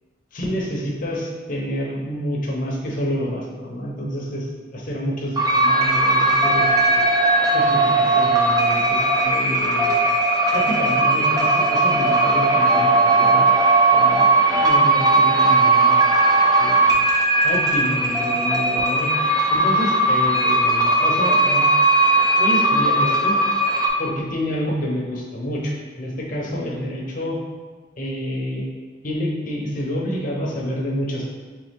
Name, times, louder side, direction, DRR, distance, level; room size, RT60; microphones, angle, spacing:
voice 1, 0.3-7.0 7.5-10.0 10.5-16.1 16.6-17.0 17.4-19.1 19.5-21.7 22.4-23.4 24.0-27.4 28.0-28.7 29.0-31.2, equal, 45° left, -2 dB, 0.7 m, -28 dB
sound 1, 5.4-23.9, right 2 dB, 20° right, 0.4 m, -18 dB
3.9 x 3.3 x 3.5 m, 1.4 s
head